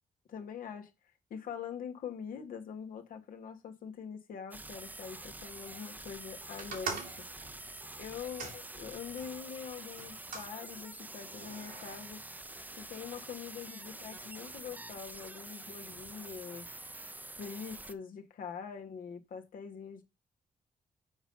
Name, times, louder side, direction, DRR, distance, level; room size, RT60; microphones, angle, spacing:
voice 1, 0.3-0.9 1.3-7.6 8.0-12.2 12.8-16.7 17.4-20.0, left 7 dB, 75° left, 1.7 m, -44 dB
sound 1, 4.5-17.9, right 2 dB, 10° right, 0.7 m, -47 dB
sound 2, 6.6-9.3 10.0-10.5 11.3-12.0, right 5 dB, 90° right, 2.9 m, -43 dB
7.1 x 5.4 x 5.5 m
cardioid pair, 120°, 14 cm